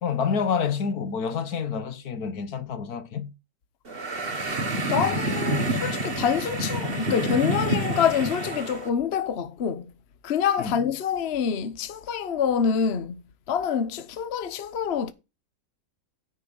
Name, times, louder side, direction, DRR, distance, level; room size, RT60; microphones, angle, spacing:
voice 1, 0.0-3.3 10.6-10.8, left 6 dB, 70° left, 1.6 m, -28 dB
sound 1, 3.9-8.9, right 1 dB, 35° right, 1.6 m, -28 dB
voice 2, 4.9-9.9 10.2-13.2 13.5-15.1, left 7 dB, 50° left, 1.0 m, -26 dB
9.6 x 5.4 x 7.2 m
omnidirectional pair, 1.7 m